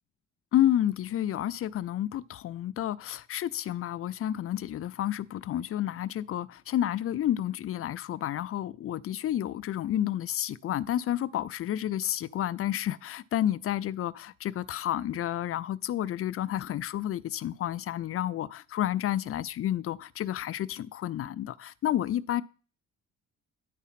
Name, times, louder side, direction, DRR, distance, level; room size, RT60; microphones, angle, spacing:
voice 1, 0.5-22.4, left 12 dB, 50° left, 0.5 m, -30 dB
10.0 x 4.2 x 5.7 m
cardioid pair, 90°, 30 cm